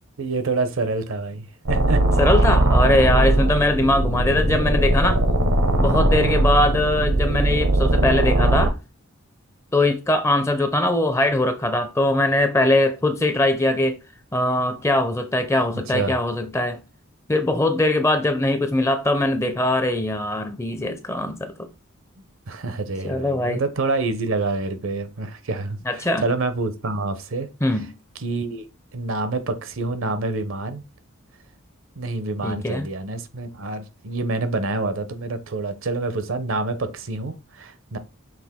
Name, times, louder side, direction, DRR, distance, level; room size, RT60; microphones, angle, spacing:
voice 1, 0.2-2.0 15.7-16.2 22.5-27.5 28.2-28.6 28.9-30.8 32.0-38.0, right 3 dB, 70° right, 0.7 m, -27 dB
sound 1, 1.7-8.7, right 1 dB, 85° right, 1.0 m, -19 dB
voice 2, 2.2-5.2 5.8-8.8 9.7-14.0 14.3-16.8 17.3-21.5 23.0-23.6 25.9-26.2 27.6-27.9 32.4-32.9, left 1 dB, 15° left, 0.5 m, -21 dB
5.9 x 2.5 x 3.6 m
head